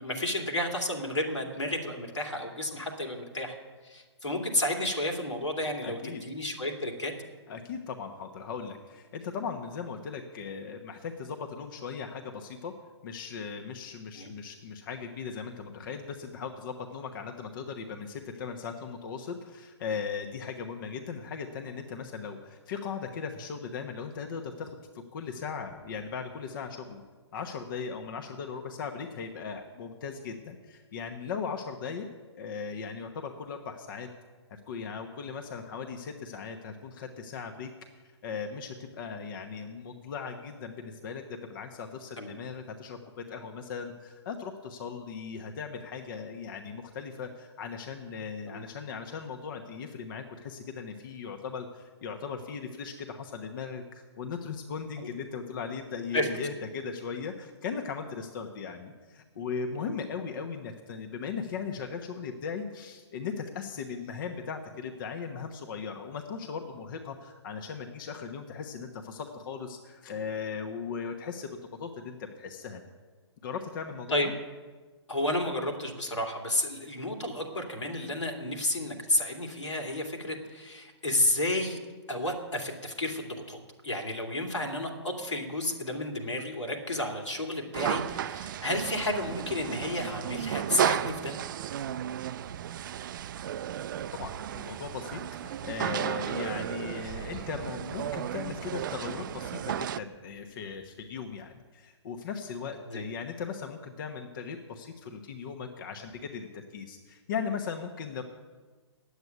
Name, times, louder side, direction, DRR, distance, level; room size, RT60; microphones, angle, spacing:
voice 1, 0.0-3.6 3.8-7.1 14.2-14.3 42.2-42.4 48.5-48.6 56.1-56.3 59.7-59.8 74.1-74.3 75.1-81.8 82.1-83.6 83.8-91.3 102.9-103.0, left 1 dB, 90° left, 2 dB, 2.6 m, -31 dB
voice 2, 5.8-6.2 7.5-12.7 13.0-24.8 25.1-27.0 27.3-32.1 32.3-34.1 34.5-37.7 38.2-71.5 71.8-72.8 73.4-74.3 94.1-108.2, left 6 dB, 45° left, 4 dB, 1.1 m, -38 dB
sound 1, 87.7-100.0, right 10 dB, 45° right, 0.4 m, -34 dB
9.5 x 8.2 x 9.3 m, 1.3 s
figure-of-eight pair, 130°, 15 cm